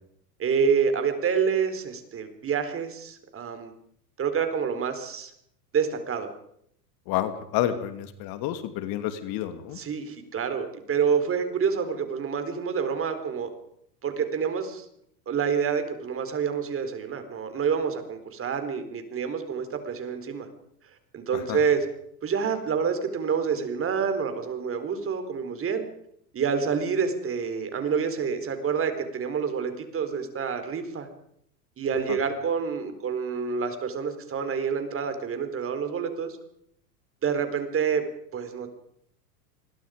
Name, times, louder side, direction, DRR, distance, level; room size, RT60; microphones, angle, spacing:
voice 1, 0.4-3.7 4.2-5.3 5.7-6.3 9.8-13.5 14.0-14.8 15.3-20.5 21.1-21.8 22.2-25.9 26.3-31.1 31.8-36.4 37.2-38.0 38.3-38.7, right 6 dB, 30° right, 8 dB, 4.1 m, -27 dB
voice 2, 7.1-9.8 21.3-21.6 32.1-32.2, left 12 dB, 50° left, 10 dB, 2.6 m, -30 dB
26.0 x 22.0 x 5.1 m, 0.71 s
hypercardioid pair, 105°, 47 cm